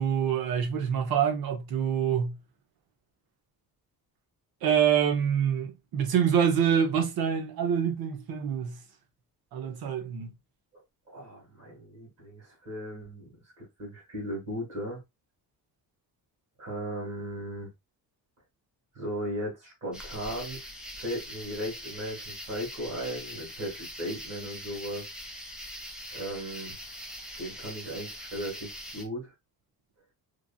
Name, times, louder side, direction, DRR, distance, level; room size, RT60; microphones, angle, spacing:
voice 1, 0.0-2.4 4.6-8.8 9.5-10.3, right 8 dB, 70° right, 0.8 m, -26 dB
voice 2, 11.1-15.0 16.6-17.7 19.0-20.6 21.0-25.1 26.1-26.8 27.4-29.3, equal, 40° right, 1.8 m, -37 dB
sound 1, 19.9-29.0, equal, ahead, 0.4 m, -42 dB
3.1 x 2.6 x 2.2 m
cardioid pair, 155°, 37 cm